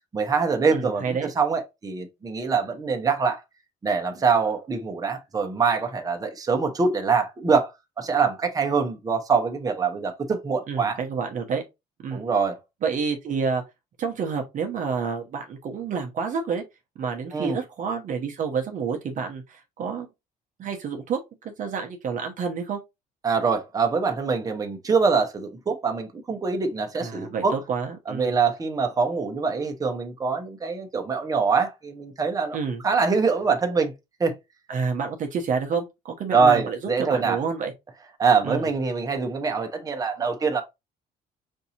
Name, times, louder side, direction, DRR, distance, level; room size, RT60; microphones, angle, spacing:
voice 1, 0.1-3.4 3.8-7.7 8.0-11.0 12.1-12.6 17.3-17.6 23.2-27.5 28.1-32.6 32.8-33.9 34.2-34.3 36.3-37.4 38.2-40.6, right 5 dB, 20° right, 0.8 m, -24 dB
voice 2, 0.7-1.3 10.7-11.6 12.0-12.2 12.8-13.6 14.0-16.6 17.0-20.1 20.6-22.8 27.0-28.3 32.5-32.8 34.7-37.7 38.4-38.6, right 5 dB, 50° right, 0.8 m, -29 dB
5.3 x 2.7 x 2.8 m
cardioid pair, 110°, 17 cm